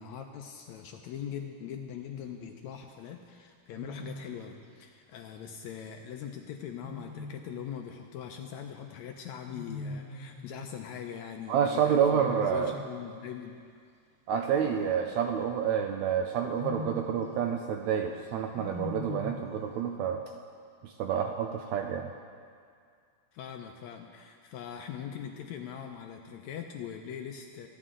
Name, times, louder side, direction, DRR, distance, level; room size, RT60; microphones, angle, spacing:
voice 1, 0.0-13.6 23.3-27.7, left 8 dB, 80° left, 4 dB, 1.7 m, -41 dB
Wild animals, 2.1-2.5 3.7-4.4 6.8-7.7 9.4-10.5 12.0-13.0 14.5-15.6 16.4-17.2 18.5-19.5, left 2 dB, 25° right, 3.2 m, -41 dB
voice 2, 11.5-12.7 14.3-20.2 20.8-22.1, right 8 dB, 80° right, 4 dB, 1.7 m, -28 dB
24.5 x 10.5 x 3.8 m, 2.2 s
omnidirectional pair, 3.8 m